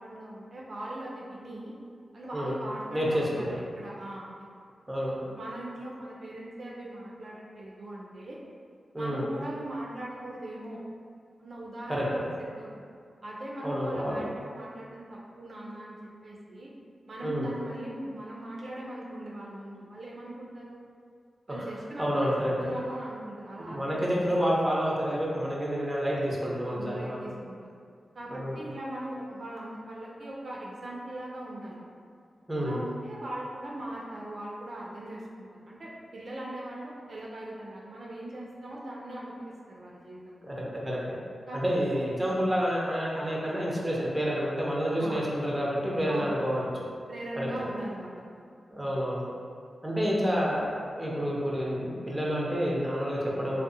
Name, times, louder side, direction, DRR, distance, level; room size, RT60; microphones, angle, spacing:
voice 1, 0.0-1.7 2.1-4.3 5.0-8.4 9.0-10.8 11.4-12.2 12.6-12.7 13.2-16.0 16.2-16.7 17.1-20.8 21.5-22.3 22.6-24.0 26.6-27.7 28.1-31.8 32.6-40.5 41.5-41.6 44.9-45.2 46.1-46.3 47.1-48.5, right 1 dB, 60° right, -5 dB, 0.4 m, -40 dB
voice 2, 2.9-3.7 4.9-5.1 8.9-9.3 11.9-12.2 13.6-14.2 17.2-17.5 22.0-22.7 23.6-27.3 28.3-28.6 32.5-32.8 40.4-41.2 41.5-46.6 47.4-47.5 48.7-49.3 49.8-53.6, equal, 10° right, -4 dB, 0.5 m, -29 dB
2.6 x 2.0 x 2.5 m, 2.2 s
cardioid pair, 65°, 0 cm